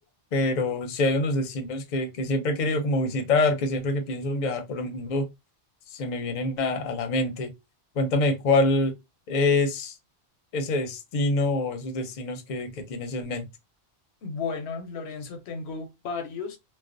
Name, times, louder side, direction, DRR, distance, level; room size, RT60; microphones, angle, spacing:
voice 1, 0.3-5.3 5.9-7.5 8.0-8.9 9.3-10.0 10.5-13.4, left 2 dB, 55° left, 0.6 m, -26 dB
voice 2, 14.2-16.6, left 5 dB, 85° left, 0.9 m, -34 dB
2.4 x 2.1 x 2.4 m
omnidirectional pair, 1.1 m